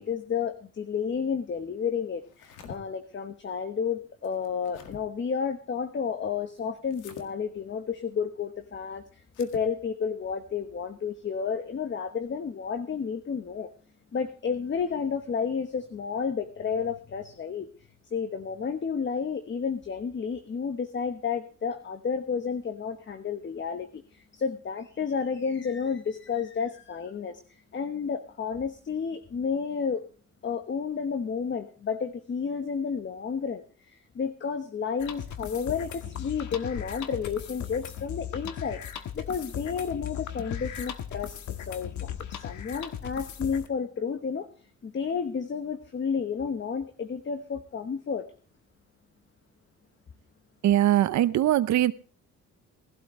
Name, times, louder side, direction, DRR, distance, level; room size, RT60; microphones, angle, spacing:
voice 1, 0.0-9.0 9.4-13.7 14.1-17.7 18.1-27.4 27.7-30.0 30.4-44.5 44.8-48.3, left 6 dB, 40° left, 1.1 m, -31 dB
sound 1, 2.2-2.8 4.2-5.0 6.9-7.3 9.3-9.7, left 6 dB, 90° left, 1.9 m, -46 dB
sound 2, 35.0-43.7, left 9 dB, 75° left, 1.4 m, -37 dB
voice 2, 50.6-51.9, right 12 dB, 70° right, 0.7 m, -21 dB
18.5 x 12.0 x 3.2 m
cardioid pair, 90°, 30 cm